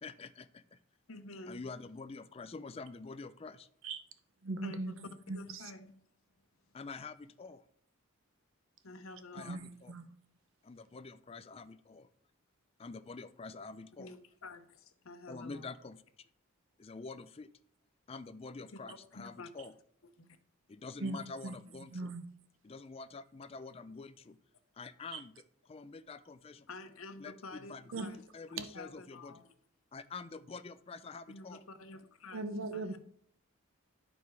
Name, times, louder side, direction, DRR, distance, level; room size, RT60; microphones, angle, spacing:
voice 1, 0.0-0.8 1.5-3.7 6.7-7.6 9.3-9.9 10.6-12.1 12.8-14.1 15.3-16.3 16.8-17.5 18.1-19.7 20.7-22.1 22.6-24.4 24.7-25.3 25.7-26.7 27.2-28.1 28.3-29.4 29.9-31.6, left 4 dB, 25° left, 0.4 m, -47 dB
voice 2, 1.1-1.6 4.6-6.0 8.8-9.6 14.0-15.7 18.7-19.5 20.2-20.3 26.7-29.5 31.3-33.0, left 2 dB, 80° left, 0.9 m, -50 dB
voice 3, 4.4-4.9 5.3-5.6 9.5-10.0 21.0-21.2 21.4-21.5 21.9-22.2 25.1-25.2 27.9-28.2 28.6-28.7 32.3-33.0, right 3 dB, 70° right, 0.8 m, -39 dB
11.0 x 5.3 x 4.6 m
head